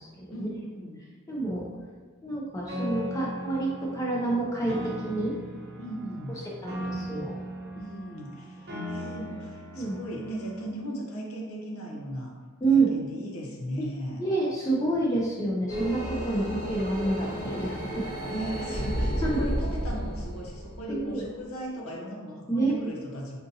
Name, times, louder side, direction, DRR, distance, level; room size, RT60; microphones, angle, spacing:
voice 1, 0.3-1.0 5.8-6.4 7.7-12.3 12.7-14.2 18.2-23.4, right 1 dB, 85° left, -1 dB, 0.6 m, -37 dB
voice 2, 1.3-1.7 2.2-5.3 6.6-7.4 9.7-10.0 12.6-12.9 13.8-13.9 14.2-18.0 19.2-19.5 20.9-21.3 22.5-22.7, right 2 dB, 15° left, -4 dB, 0.3 m, -28 dB
Piano, 2.7-10.7, equal, 50° right, 0.6 m, -38 dB
sound 1, 15.7-21.4, equal, 40° left, 0.8 m, -32 dB
3.7 x 2.6 x 2.6 m, 1.5 s
head